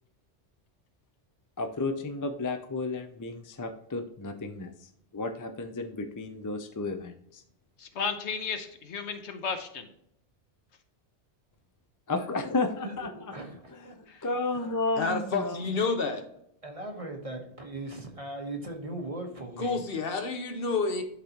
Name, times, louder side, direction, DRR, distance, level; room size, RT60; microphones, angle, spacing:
voice 1, 1.6-7.4 12.1-13.1 13.7-14.0 14.2-15.6, left 3 dB, 30° left, 6 dB, 0.3 m, -32 dB
voice 2, 7.8-9.9 14.1-14.2, left 5 dB, 75° left, 7 dB, 1.2 m, -34 dB
voice 3, 12.8-14.0 14.5-14.7 16.6-19.8, right 2 dB, 30° right, 2 dB, 1.1 m, -39 dB
voice 4, 15.0-16.2 19.6-21.0, left 4 dB, 60° left, 6 dB, 1.0 m, -29 dB
11.5 x 4.0 x 2.9 m, 0.72 s
omnidirectional pair, 1.2 m